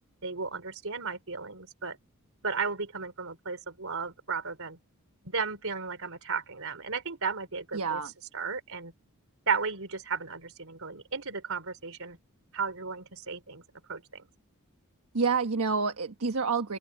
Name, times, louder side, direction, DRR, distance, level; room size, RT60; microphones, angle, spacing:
voice 1, 0.2-2.0 2.4-4.8 5.2-8.0 8.3-8.9 9.5-12.2 12.5-13.6 13.9-14.2, right 5 dB, 70° right, 4.7 m, -34 dB
voice 2, 7.7-8.1 15.1-16.8, right 5 dB, 85° right, 1.3 m, -28 dB
head